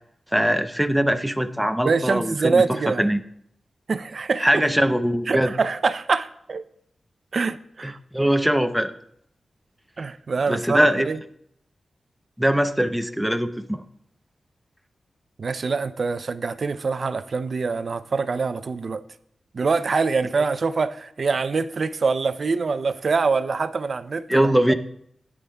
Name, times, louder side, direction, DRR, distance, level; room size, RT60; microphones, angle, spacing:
voice 1, 0.3-3.2 4.4-5.5 7.8-8.9 10.5-11.1 12.4-13.8 24.3-24.7, equal, ahead, 0.6 m, -21 dB
voice 2, 1.8-3.1 3.9-4.7 5.3-6.6 7.3-8.0 10.0-11.2 15.4-19.0 19.5-24.5, right 4 dB, 50° right, 0.4 m, -24 dB
16.0 x 9.8 x 2.2 m
wide cardioid pair, 115°, 0 cm